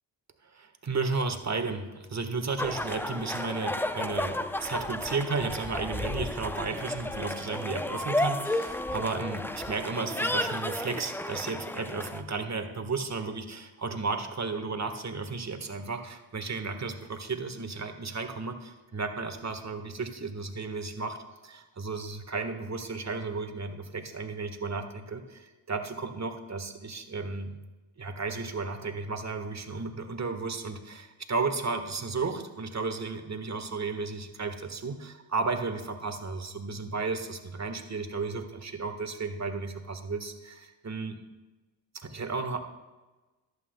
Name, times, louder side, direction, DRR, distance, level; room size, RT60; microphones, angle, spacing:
voice 1, 0.4-21.2 21.4-27.5 28.0-41.2 41.9-42.6, right 4 dB, 35° right, 7 dB, 1.4 m, -34 dB
sound 1, 2.6-12.2, left 1 dB, 5° left, 0.5 m, -32 dB
14.0 x 11.5 x 2.2 m, 1.2 s
hypercardioid pair, 45°, 49 cm